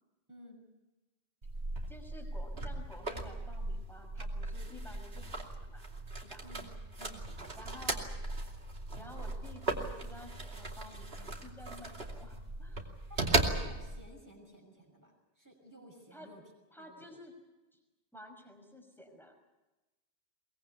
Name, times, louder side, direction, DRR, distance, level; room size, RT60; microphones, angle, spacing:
voice 1, 0.3-0.6 6.4-6.7 7.0-7.2 13.1-16.4 16.8-17.1, equal, 15° right, 1 dB, 6.1 m, -54 dB
sound 1, 1.4-14.0, right 2 dB, 70° right, 2.9 m, -37 dB
voice 2, 1.9-5.8 6.2-6.4 7.6-8.0 9.0-12.9 16.1-16.3 16.7-17.3 17.7-17.8 18.1-19.5, left 1 dB, ahead, 3 dB, 5.6 m, -52 dB
22.5 x 21.5 x 8.4 m, 1.1 s
omnidirectional pair, 1.1 m